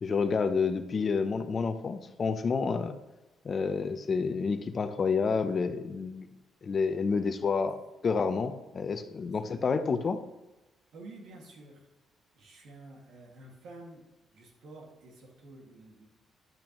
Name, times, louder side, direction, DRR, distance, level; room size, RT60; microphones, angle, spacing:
voice 1, 0.0-3.0 3.4-6.3 6.6-7.8 8.0-10.2, left 5 dB, 45° left, 10 dB, 0.7 m, -29 dB
voice 2, 10.9-11.9 12.3-14.0 14.3-16.1, right 2 dB, 75° right, 1 dB, 2.2 m, -50 dB
10.5 x 8.6 x 3.1 m, 1.0 s
cardioid pair, 90°, 0 cm